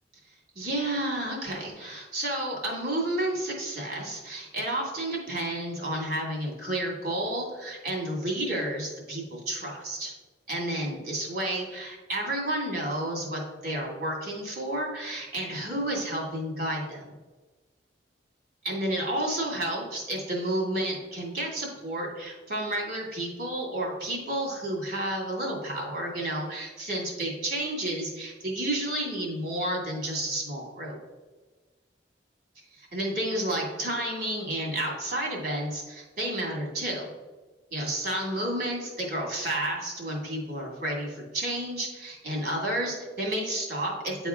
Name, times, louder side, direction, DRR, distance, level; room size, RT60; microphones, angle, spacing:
voice 1, 0.6-10.1 10.5-17.1 18.6-31.0 32.7-37.1 37.7-44.3, right 1 dB, 60° right, -1 dB, 2.2 m, -31 dB
9.7 x 3.6 x 3.6 m, 1.3 s
head